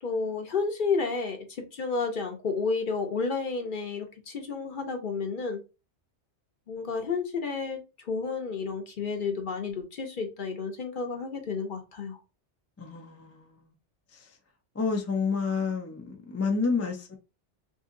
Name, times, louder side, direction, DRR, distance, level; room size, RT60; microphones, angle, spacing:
voice 1, 0.0-5.6 6.7-12.2, left 4 dB, 50° left, 0.9 m, -31 dB
voice 2, 12.8-13.7 14.1-14.3 14.7-17.1, left 4 dB, 20° left, 0.4 m, -30 dB
2.7 x 2.7 x 3.7 m
omnidirectional pair, 1.2 m